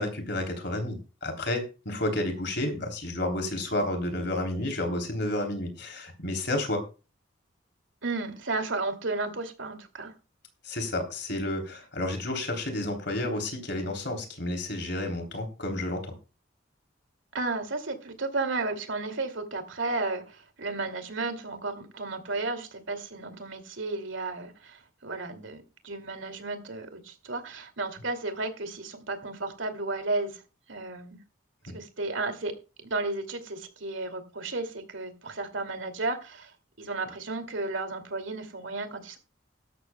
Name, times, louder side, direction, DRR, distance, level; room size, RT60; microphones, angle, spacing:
voice 1, 0.0-6.9 10.6-16.1 31.7-31.8, left 1 dB, 55° left, 5 dB, 3.3 m, -31 dB
voice 2, 8.0-10.1 17.3-30.4 30.7-31.2 31.7-32.6 32.8-36.5 36.8-39.2, right 3 dB, 70° right, 7 dB, 2.5 m, -33 dB
17.0 x 13.0 x 2.2 m, 0.31 s
head